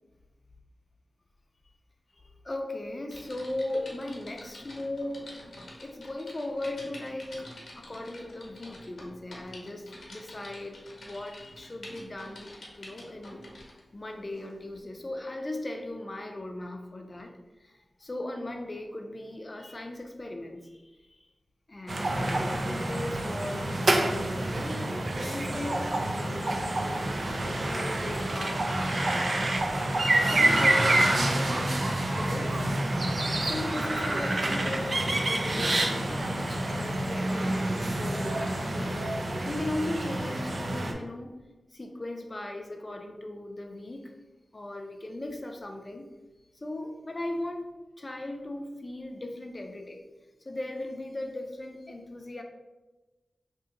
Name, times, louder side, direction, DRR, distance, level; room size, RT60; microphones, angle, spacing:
voice 1, 2.1-7.5 7.8-12.5 12.8-13.4 13.9-17.3 17.6-21.2 21.7-24.9 25.2-29.3 30.2-32.6 33.4-41.4 41.7-44.1 44.5-46.0 46.6-50.0 50.4-52.4, left 1 dB, 35° left, 3 dB, 0.5 m, -38 dB
Typing, 3.1-13.8 14.4-14.6, left 1 dB, 80° left, 0.8 m, -48 dB
sound 1, 21.9-40.9, right 1 dB, 55° right, 0.4 m, -28 dB
2.7 x 2.7 x 3.8 m, 1.1 s
wide cardioid pair, 65°, 0 cm